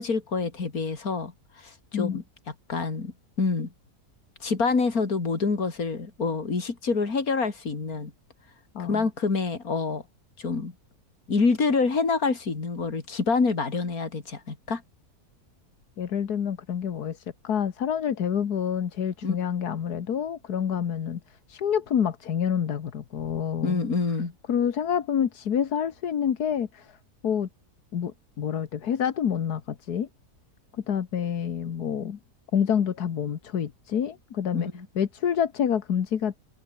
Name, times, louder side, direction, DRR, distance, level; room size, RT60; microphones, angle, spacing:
voice 1, 0.0-2.2 2.7-3.7 4.4-8.1 8.9-10.0 10.4-10.7 11.3-14.8 19.2-19.4 23.6-24.3 34.5-34.9, left 4 dB, 65° left, 3.6 m, -27 dB
voice 2, 8.8-9.1 16.0-23.8 24.5-27.0 27.2-27.5 27.9-30.1 30.9-32.2 32.5-34.7 35.0-36.4, left 8 dB, 80° left, 1.9 m, -27 dB
omnidirectional pair, 1.6 m